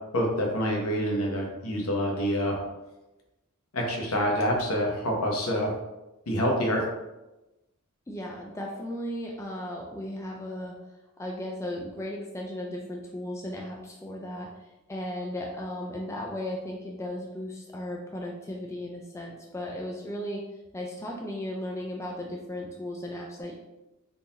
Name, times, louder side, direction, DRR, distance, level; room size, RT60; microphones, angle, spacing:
voice 1, 0.1-2.6 3.7-5.7 6.3-6.9, equal, 70° left, -1 dB, 0.9 m, -26 dB
voice 2, 8.1-10.8 11.2-20.4 20.7-23.5, left 1 dB, 15° left, -1 dB, 0.3 m, -36 dB
3.7 x 2.8 x 2.6 m, 1.0 s
head